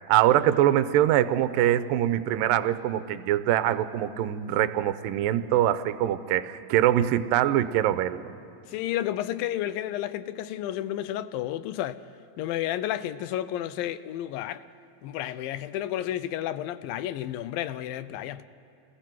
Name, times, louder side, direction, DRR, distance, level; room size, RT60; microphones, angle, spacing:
voice 1, 0.1-8.2, right 12 dB, 80° right, 2.2 m, -23 dB
voice 2, 8.7-12.0 12.4-14.6 15.0-18.4, left 12 dB, 80° left, 2.3 m, -31 dB
28.0 x 21.5 x 4.6 m
omnidirectional pair, 4.2 m